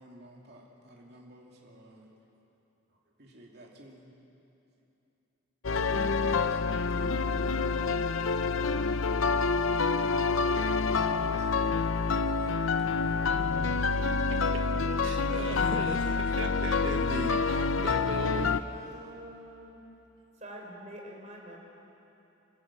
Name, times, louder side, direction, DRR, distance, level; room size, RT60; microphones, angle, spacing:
voice 1, 0.0-2.1 3.2-4.1 5.9-8.8 9.1-10.1 10.8-13.2, right 1 dB, 55° right, -2 dB, 2.8 m, -52 dB
sound 1, 5.6-18.6, left 4 dB, 85° left, 0.7 m, -27 dB
voice 2, 14.3-14.6 15.0-18.6, right 2 dB, 75° right, 4 dB, 1.2 m, -38 dB
voice 3, 18.7-19.8 20.4-21.6, equal, 35° right, 0 dB, 4.3 m, -46 dB
27.0 x 15.0 x 8.6 m, 2.9 s
head